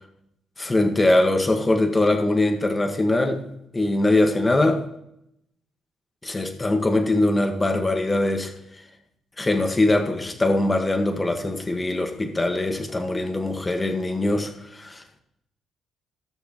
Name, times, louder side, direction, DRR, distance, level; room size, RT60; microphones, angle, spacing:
voice 1, 0.6-3.4 3.7-4.8 6.2-8.5 9.4-15.0, left 2 dB, 20° left, 1.7 m, -22 dB
18.5 x 6.4 x 3.1 m
cardioid pair, 90°, 0 cm